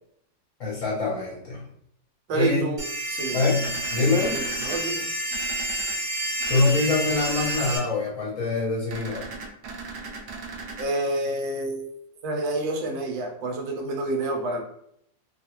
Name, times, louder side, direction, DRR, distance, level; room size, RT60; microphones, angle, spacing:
voice 1, 0.6-1.6 2.3-2.6 3.3-4.4 6.5-9.3, left 3 dB, 55° left, -4 dB, 1.0 m, -24 dB
voice 2, 2.3-2.8 3.1-3.4 4.1-5.0 10.8-11.9 12.2-14.6, right 2 dB, 85° right, 2 dB, 1.4 m, -28 dB
sound 1, 2.8-7.8, right 1 dB, 50° right, 0.5 m, -29 dB
sound 2, 3.6-4.8 5.3-5.9 6.4-6.7 7.1-7.8 8.9-10.9, right 4 dB, 70° right, 1.1 m, -38 dB
3.1 x 2.3 x 2.9 m, 0.72 s
omnidirectional pair, 2.0 m